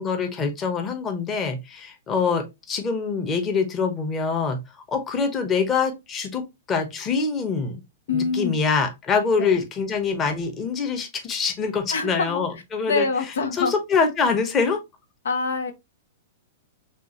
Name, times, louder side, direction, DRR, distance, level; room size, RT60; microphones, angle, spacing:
voice 1, 0.0-4.6 4.9-7.8 8.1-13.1 13.6-14.8, left 5 dB, 25° left, 1.0 m, -24 dB
voice 2, 8.1-8.6 9.4-9.6 11.9-12.4 12.9-13.7 15.2-15.7, left 4 dB, 85° left, 0.8 m, -25 dB
6.0 x 2.5 x 2.9 m
hypercardioid pair, 140°, 0 cm